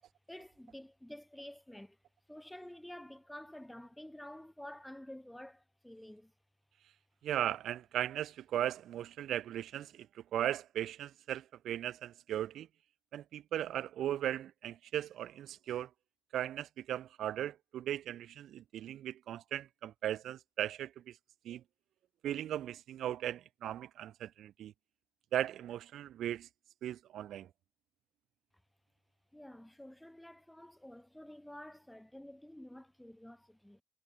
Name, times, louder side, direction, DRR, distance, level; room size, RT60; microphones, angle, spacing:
voice 1, 0.3-2.0 2.3-6.3 29.3-33.8, left 1 dB, 5° left, 2.6 m, -50 dB
voice 2, 7.2-10.1 10.3-12.7 13.1-15.9 16.3-21.2 21.4-21.6 22.2-24.7 25.3-26.5 26.8-27.5, right 11 dB, 65° right, 0.4 m, -37 dB
hypercardioid pair, 50°, 0 cm